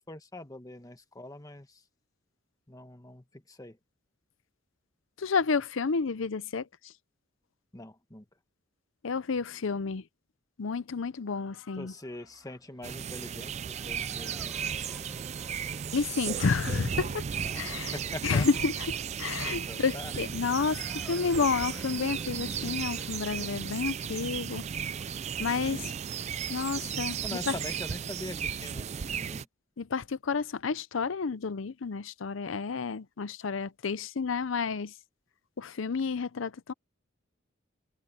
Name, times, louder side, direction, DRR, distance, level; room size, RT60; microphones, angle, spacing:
voice 1, 0.1-1.7 2.7-3.8 7.7-8.2 11.8-15.2 17.4-18.4 19.4-20.1 27.2-29.5, left 1 dB, 20° left, 1.5 m, -43 dB
voice 2, 5.2-6.9 9.0-10.0 10.6-11.9 15.9-17.2 17.5-24.6 25.4-25.9 26.5-27.6 29.8-34.9 35.6-36.7, left 5 dB, 75° left, 0.6 m, -30 dB
Race car auto racing / Accelerating revving vroom, 11.5-25.6, equal, 5° right, 2.1 m, -55 dB
sound 1, 12.8-29.4, right 7 dB, 35° right, 0.3 m, -35 dB
head